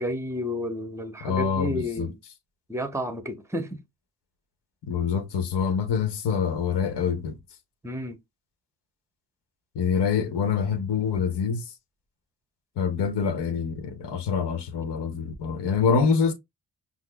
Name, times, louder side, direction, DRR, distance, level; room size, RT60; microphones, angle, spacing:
voice 1, 0.0-2.2 2.7-3.8 7.8-8.2, equal, 5° right, 0.8 m, -31 dB
voice 2, 1.2-2.1 4.9-7.4 9.7-11.6 12.8-16.3, left 6 dB, 80° left, 0.9 m, -25 dB
5.8 x 2.0 x 2.2 m
cardioid pair, 60°, 41 cm